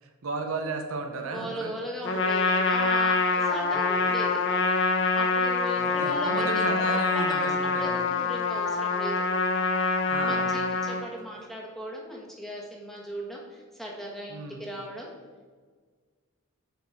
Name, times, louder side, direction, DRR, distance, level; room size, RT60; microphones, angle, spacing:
voice 1, 0.0-1.7 3.7-3.8 5.8-8.1 10.1-10.5 14.3-14.6, right 3 dB, 65° right, 5 dB, 0.8 m, -34 dB
voice 2, 1.3-4.4 5.1-9.3 10.1-15.1, right 1 dB, ahead, -2 dB, 1.4 m, -38 dB
Trumpet, 2.0-11.0, left 4 dB, 60° left, 0.9 m, -25 dB
9.3 x 4.3 x 4.7 m, 1.5 s
head